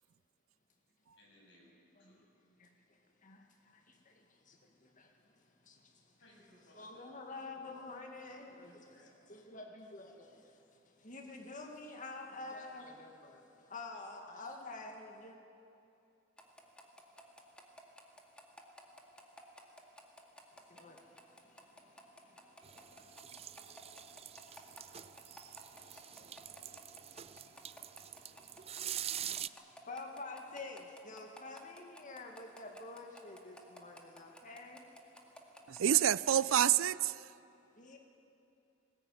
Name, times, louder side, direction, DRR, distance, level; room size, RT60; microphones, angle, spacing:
voice 1, 1.2-2.3 6.2-7.2 7.5-7.9 8.2-9.3 13.9-14.0 24.5-24.7, left 1 dB, 65° left, 7.5 m, -65 dB
voice 2, 2.6-6.2 6.8-8.9 9.3-15.4 20.7-35.2 37.8-38.0, left 3 dB, 40° left, 2.0 m, -50 dB
sound 1, 16.4-35.8, equal, 5° left, 2.1 m, -55 dB
sound 2, 22.6-29.5, right 10 dB, 30° right, 0.4 m, -45 dB
voice 3, 35.7-37.3, right 10 dB, 90° right, 0.5 m, -28 dB
20.0 x 19.5 x 9.3 m
head